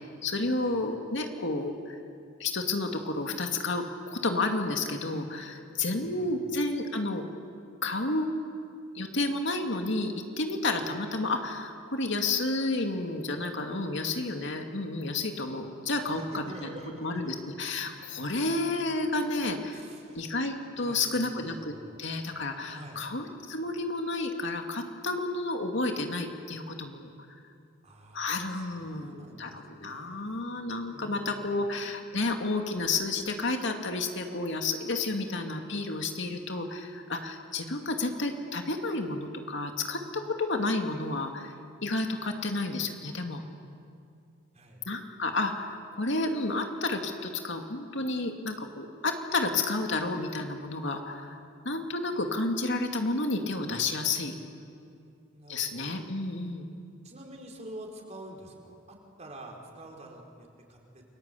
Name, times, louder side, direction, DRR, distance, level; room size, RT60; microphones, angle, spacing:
voice 1, 0.2-2.0 2.4-7.2 7.8-8.3 8.9-16.7 17.0-19.8 20.1-27.1 28.1-41.5 41.8-43.4 44.9-51.4 51.6-54.3 55.5-56.7, left 2 dB, 65° left, 3 dB, 2.4 m, -31 dB
voice 2, 5.9-6.3 16.0-17.3 19.7-20.2 20.7-22.0 22.7-23.0 27.8-30.4 30.9-31.6 44.5-44.8 54.7-55.8 57.0-61.0, right 1 dB, 35° right, 0 dB, 4.8 m, -48 dB
29.5 x 22.5 x 8.5 m, 2.4 s
head